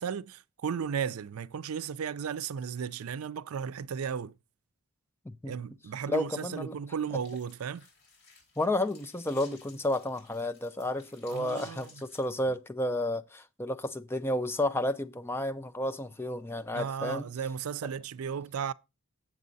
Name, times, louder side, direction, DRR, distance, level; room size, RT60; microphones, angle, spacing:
voice 1, 0.0-4.3 5.5-7.8 11.3-11.9 16.7-18.7, right 7 dB, 90° right, 0.4 m, -35 dB
voice 2, 6.1-6.8 8.6-17.3, left 1 dB, 10° left, 0.5 m, -31 dB
sound 1, 7.2-12.2, left 4 dB, 50° left, 3.8 m, -57 dB
7.6 x 7.5 x 4.0 m
head